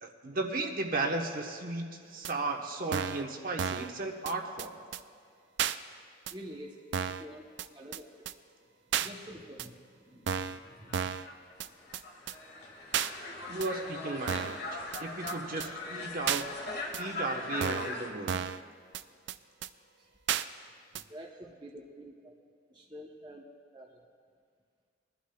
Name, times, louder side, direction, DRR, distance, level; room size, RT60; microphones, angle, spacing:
voice 1, 0.0-4.8 13.5-16.5 17.0-18.4, right 2 dB, 50° right, 2 dB, 1.0 m, -35 dB
sound 1, 2.2-2.3 2.9-3.2 3.6-3.9 4.3-4.4 4.6-4.7 4.9-5.0 5.6-5.8 6.3-6.4 6.9-7.2 7.6-7.7 7.9-8.0 8.3-8.4 8.9-9.1 9.6-9.7 10.3-10.6 10.9-11.3 11.6-11.7 11.9-12.0 12.3-12.4 12.9-13.1 13.6-13.7 14.3-14.6 14.9-15.0 15.3-15.4 15.6-15.7 16.3-16.4 16.9-17.0 17.6-17.9 18.3-18.6 18.9-19.0 19.3-19.4 19.6-19.7 20.3-20.4 20.9-21.0, right 8 dB, 65° right, 0.4 m, -32 dB
voice 2, 6.3-6.8 7.2-7.4 7.7-8.1 9.0-11.1 11.5-11.9 20.0-20.1 21.1-22.4 22.7-23.4 23.7-24.0, equal, 25° right, -1 dB, 0.8 m, -48 dB
sound 2, 10.6-18.1, left 2 dB, 55° left, 1.7 m, -40 dB
22.0 x 11.5 x 2.3 m, 2.1 s
head